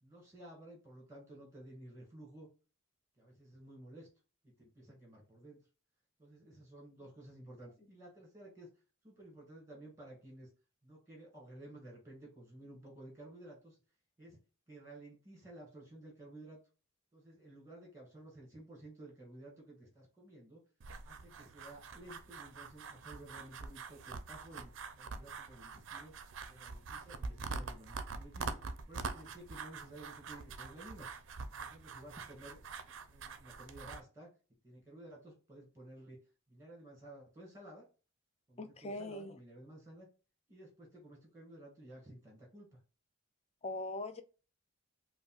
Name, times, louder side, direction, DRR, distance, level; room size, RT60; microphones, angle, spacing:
voice 1, 0.0-2.5 3.2-4.1 4.4-5.6 6.2-8.7 9.0-10.5 10.8-13.8 14.2-14.4 14.7-16.6 17.1-20.6 21.0-24.7 25.0-26.1 26.5-31.1 31.5-32.6 33.1-34.3 34.6-36.2 36.5-37.8 38.5-40.1 40.5-42.8, right 1 dB, 15° right, 1.8 m, -54 dB
sound 1, 20.8-34.0, right 4 dB, 55° right, 0.4 m, -45 dB
voice 2, 38.6-39.3 43.6-44.2, left 2 dB, 30° left, 0.4 m, -41 dB
5.2 x 2.2 x 2.3 m
head